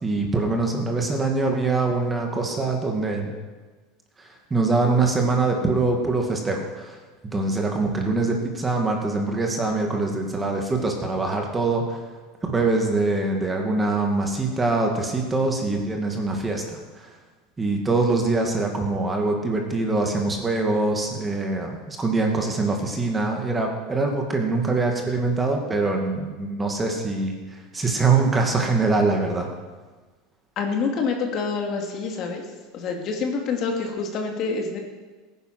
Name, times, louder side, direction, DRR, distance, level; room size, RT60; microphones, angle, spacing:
voice 1, 0.0-3.3 4.2-7.0 7.3-12.0 12.5-17.1 17.6-29.5, right 3 dB, 15° right, 2 dB, 2.3 m, -24 dB
voice 2, 30.6-32.4 32.7-34.8, left 4 dB, 45° left, 2 dB, 2.6 m, -27 dB
16.0 x 10.0 x 6.1 m, 1.3 s
supercardioid pair, 125°, 0 cm